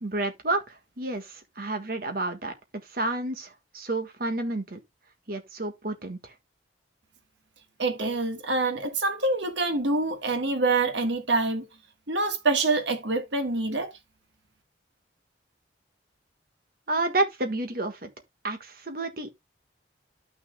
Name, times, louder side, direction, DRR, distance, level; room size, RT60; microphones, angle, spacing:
voice 1, 0.0-2.5 2.9-4.8 5.3-6.3 16.9-18.1 18.4-19.3, right 2 dB, 50° right, 1.6 m, -30 dB
voice 2, 7.8-11.7 12.1-13.9, right 3 dB, 75° right, 1.5 m, -26 dB
12.5 x 6.2 x 2.2 m
head